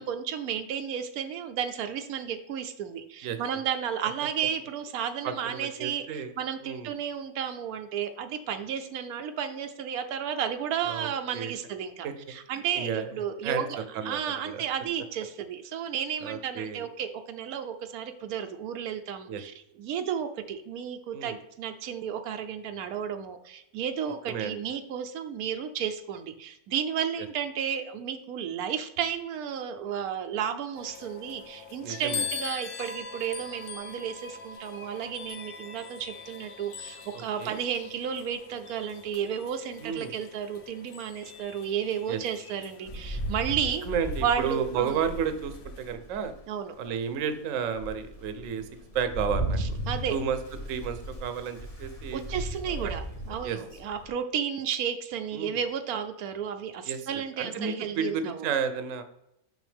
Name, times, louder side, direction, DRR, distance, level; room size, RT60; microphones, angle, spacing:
voice 1, 0.0-43.8 44.2-45.0 46.5-46.7 49.6-50.1 52.1-58.5, right 8 dB, 90° right, 7 dB, 1.1 m, -33 dB
voice 2, 5.2-6.3 6.6-6.9 10.9-11.5 12.0-12.1 12.7-13.1 13.4-13.6 13.9-14.2 14.5-14.6 16.2-16.8 19.3-19.4 21.1-21.4 24.3-24.5 27.2-27.3 31.8-32.3 37.1-37.6 39.8-40.1 42.1-42.2 43.9-46.3 46.8-48.6 48.9-49.8 50.1-50.4 50.7-52.2 52.8-52.9 53.4-53.6 55.3-55.6 56.9-59.0, right 7 dB, 65° right, 9 dB, 1.0 m, -32 dB
sound 1, 30.7-45.9, left 6 dB, 55° left, 0.6 m, -42 dB
Rain, 42.8-46.4 46.9-47.0 47.5-54.1, right 1 dB, 25° left, 1.2 m, -36 dB
6.2 x 5.9 x 3.4 m, 0.83 s
omnidirectional pair, 1.5 m